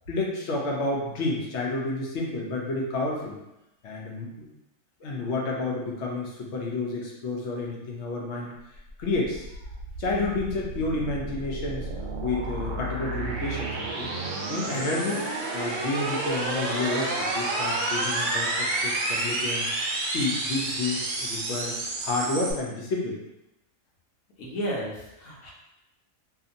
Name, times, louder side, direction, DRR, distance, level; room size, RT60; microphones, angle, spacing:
voice 1, 0.1-3.4 3.8-4.5 5.0-8.5 9.0-9.5 10.0-11.9 12.2-14.1 14.5-15.2 15.5-19.7 20.1-21.7 22.0-23.2, left 2 dB, 65° left, -2 dB, 0.9 m, -30 dB
sound 1, 8.8-22.5, right 2 dB, 75° right, 0.9 m, -30 dB
voice 2, 24.4-25.5, equal, 85° left, -4 dB, 1.2 m, -33 dB
2.7 x 2.5 x 2.5 m, 0.90 s
omnidirectional pair, 1.4 m